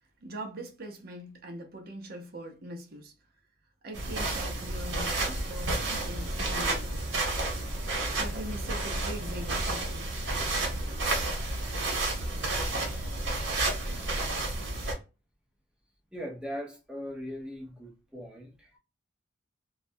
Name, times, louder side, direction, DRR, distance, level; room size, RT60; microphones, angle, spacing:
voice 1, 0.2-3.1 3.8-7.0 8.2-10.1 11.7-12.0, right 1 dB, 55° right, 0.6 m, -42 dB
sound 1, 3.9-14.9, right 2 dB, 85° right, 0.9 m, -31 dB
voice 2, 16.1-18.8, equal, 5° right, 0.6 m, -39 dB
2.3 x 2.1 x 2.6 m
head